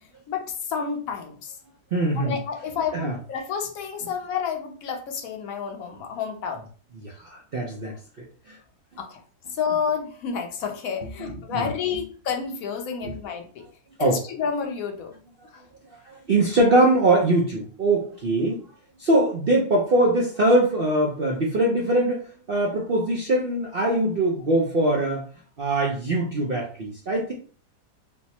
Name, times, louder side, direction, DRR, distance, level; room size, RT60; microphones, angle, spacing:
voice 1, 0.3-1.5 2.2-6.6 9.0-9.2 9.5-13.7 14.0-15.1 15.5-15.6, left 6 dB, 65° left, 4 dB, 1.0 m, -30 dB
voice 2, 1.9-2.4 2.9-3.2 7.0-7.9 8.5-8.6 11.5-11.7 13.0-13.1 14.0-14.2 16.1-18.6 19.0-25.3 25.6-27.3, right 1 dB, 65° right, -2 dB, 0.5 m, -22 dB
3.4 x 2.0 x 4.2 m, 0.41 s
omnidirectional pair, 1.8 m